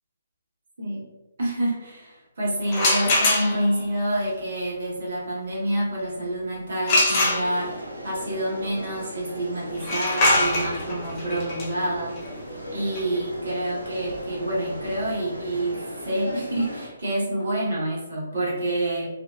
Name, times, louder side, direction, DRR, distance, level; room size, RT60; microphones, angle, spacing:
voice 1, 1.4-12.4 12.7-19.1, right 1 dB, 60° right, -5 dB, 1.0 m, -28 dB
sound 1, 2.7-3.8 6.9-7.9 9.8-15.4, left 2 dB, 30° left, 0.5 m, -24 dB
sound 2, 7.2-16.9, equal, 85° right, 0.5 m, -37 dB
2.6 x 2.1 x 2.2 m, 1.1 s
figure-of-eight pair, 135°, 0 cm